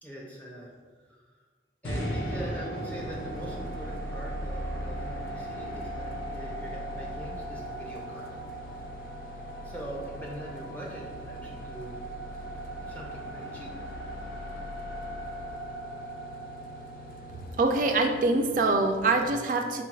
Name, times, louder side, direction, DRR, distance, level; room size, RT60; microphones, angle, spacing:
voice 1, 0.0-0.7 1.8-8.3 9.6-12.0 12.8-13.7, right 1 dB, 10° left, -3 dB, 0.6 m, -42 dB
sound 1, 1.8-18.0, right 1 dB, 90° left, 0.8 m, -37 dB
sound 2, 2.7-19.3, left 3 dB, 50° left, 0.3 m, -47 dB
voice 2, 17.6-19.8, right 3 dB, 45° right, 4 dB, 0.3 m, -24 dB
4.0 x 2.3 x 4.5 m, 1.5 s
head